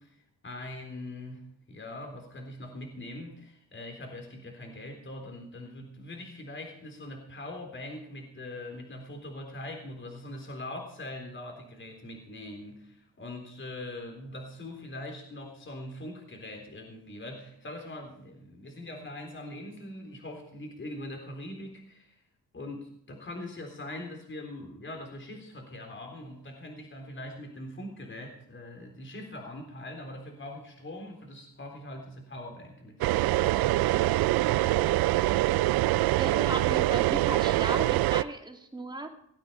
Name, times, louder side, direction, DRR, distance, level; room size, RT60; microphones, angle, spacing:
voice 1, 0.0-22.2 22.5-34.5, left 1 dB, 30° left, 3 dB, 3.8 m, -42 dB
sound 1, 33.0-38.2, right 16 dB, 70° right, 0.5 m, -24 dB
voice 2, 36.2-39.1, right 2 dB, 10° right, 4 dB, 2.4 m, -36 dB
18.0 x 8.9 x 5.8 m, 0.71 s
cardioid pair, 80°, 38 cm